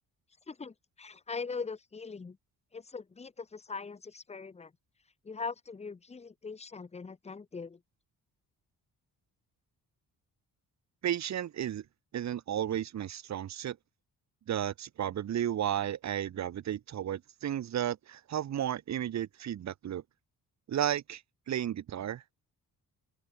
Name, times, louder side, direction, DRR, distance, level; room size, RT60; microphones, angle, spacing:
voice 1, 0.5-2.4 2.7-4.7 5.2-7.8, left 4 dB, 15° left, 0.5 m, -41 dB
voice 2, 11.0-11.8 12.1-13.8 14.5-20.0 20.7-21.2 21.5-22.2, right 10 dB, 45° right, 0.6 m, -33 dB
open air
cardioid pair, 85°, 38 cm